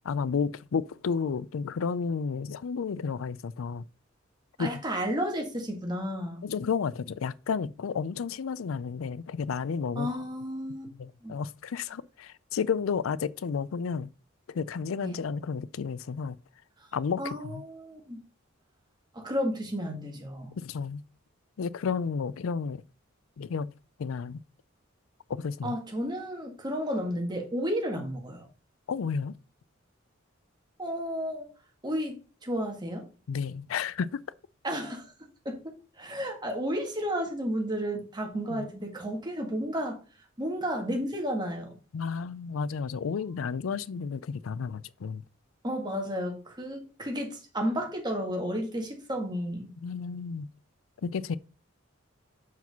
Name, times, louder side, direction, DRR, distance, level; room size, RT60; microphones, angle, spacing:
voice 1, 0.0-3.8 4.6-4.7 6.4-10.2 11.0-14.1 14.5-16.4 16.9-17.6 20.6-21.0 21.6-22.8 23.4-23.7 24.0-24.4 25.3-25.8 28.9-29.4 33.3-34.2 38.5-38.7 41.9-45.2 49.8-50.5 51.0-51.4, left 6 dB, 85° left, 0.4 m, -32 dB
voice 2, 4.6-6.5 10.0-10.9 11.2-11.4 15.0-15.2 16.8-16.9 17.2-18.2 19.1-20.5 25.6-28.5 30.8-31.5 31.8-33.1 34.6-35.1 35.5-35.6 36.0-40.0 40.4-41.8 45.6-49.8, equal, 20° right, 1.7 m, -32 dB
6.1 x 4.8 x 5.4 m
head